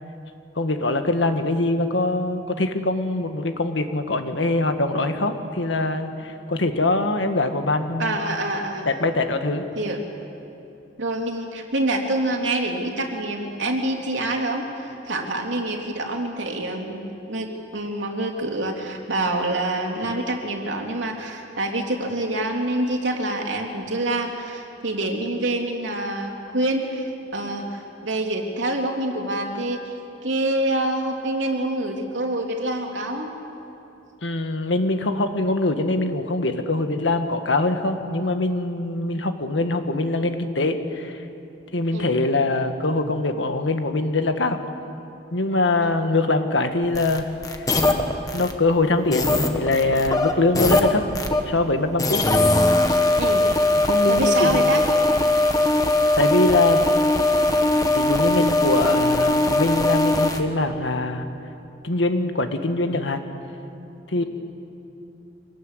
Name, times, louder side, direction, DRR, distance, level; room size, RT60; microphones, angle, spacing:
voice 1, 0.5-8.3 8.8-9.6 34.2-41.2 41.7-44.6 45.3-47.7 48.3-51.0 51.4-52.2 53.8-54.8 56.2-56.9 57.9-61.3 61.8-63.2 64.1-64.2, left 2 dB, 85° left, 7 dB, 1.6 m, -23 dB
voice 2, 8.0-8.9 9.8-10.0 11.0-29.9 30.2-33.3 41.9-42.1 45.8-45.9 53.2-53.5 54.1-54.8, right 1 dB, 85° right, 1 dB, 3.0 m, -26 dB
sound 1, 46.9-48.5 49.1-51.4 52.0-60.4, left 2 dB, 20° left, 1.4 m, -20 dB
25.0 x 19.0 x 8.1 m, 2.8 s
head